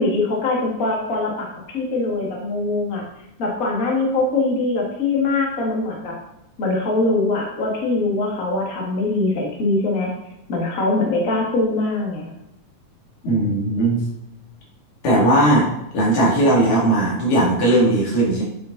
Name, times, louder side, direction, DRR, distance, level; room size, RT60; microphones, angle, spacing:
voice 1, 0.0-3.0 3.4-6.1 6.6-10.1 10.5-12.3, left 2 dB, 35° left, -2 dB, 1.6 m, -22 dB
voice 2, 13.2-14.0 15.0-15.7 15.9-18.4, right 1 dB, 70° left, -3 dB, 3.5 m, -17 dB
8.6 x 5.5 x 3.9 m, 0.84 s
omnidirectional pair, 3.5 m